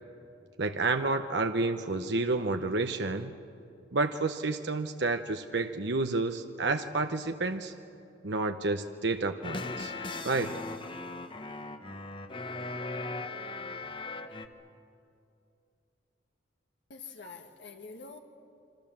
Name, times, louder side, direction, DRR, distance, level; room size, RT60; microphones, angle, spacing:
voice 1, 0.6-3.4 3.9-7.7 8.2-9.9 10.2-10.6, right 3 dB, 65° right, 7 dB, 0.8 m, -30 dB
sound 1, 9.4-14.5, left 3 dB, 25° left, 1.1 m, -38 dB
voice 2, 16.9-18.2, left 4 dB, 70° left, 3 dB, 1.6 m, -46 dB
26.5 x 25.0 x 7.4 m, 2.7 s
head